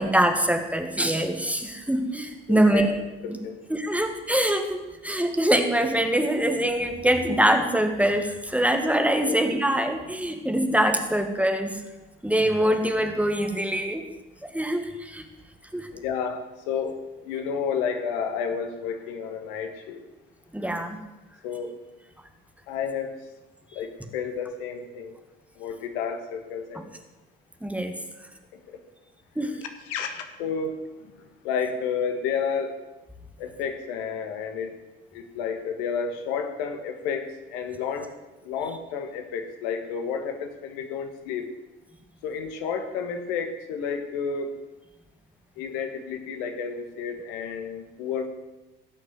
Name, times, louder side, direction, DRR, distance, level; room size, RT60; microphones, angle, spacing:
voice 1, 0.0-3.0 3.3-3.4 3.7-11.7 12.2-14.1 14.4-15.2 15.7-15.9 20.5-21.0 27.6-28.0 29.4-29.5, right 1 dB, 5° right, 5 dB, 2.0 m, -24 dB
voice 2, 2.5-2.9 3.2-3.5 9.2-9.3 15.9-20.0 21.4-21.8 22.7-23.2 23.7-25.2 25.5-26.9 28.5-28.8 29.4-32.7 33.4-34.7 35.1-38.1 38.4-41.5 42.2-44.6 45.6-48.3, left 6 dB, 70° left, 6 dB, 1.6 m, -31 dB
17.0 x 6.5 x 7.8 m, 1.1 s
hypercardioid pair, 60°, 29 cm